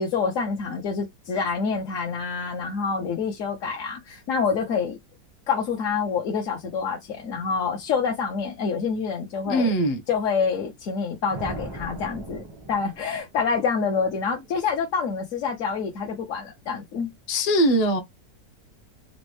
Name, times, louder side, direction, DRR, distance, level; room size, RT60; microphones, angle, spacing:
voice 1, 0.0-5.0 5.5-9.7 10.1-17.1, left 5 dB, 60° left, 0.9 m, -27 dB
voice 2, 9.5-10.0 17.3-18.0, right 1 dB, 40° left, 0.5 m, -21 dB
sound 1, 11.3-13.6, right 2 dB, 30° right, 0.4 m, -38 dB
4.1 x 2.2 x 3.1 m
omnidirectional pair, 2.0 m